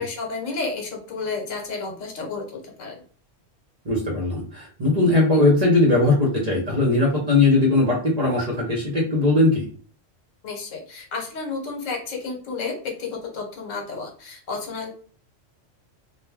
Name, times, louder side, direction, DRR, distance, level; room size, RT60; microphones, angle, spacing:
voice 1, 0.0-3.0 10.4-14.9, left 4 dB, 75° left, 2 dB, 1.1 m, -31 dB
voice 2, 3.8-9.7, left 2 dB, 40° right, -3 dB, 0.7 m, -19 dB
2.3 x 2.2 x 3.4 m, 0.44 s
omnidirectional pair, 1.3 m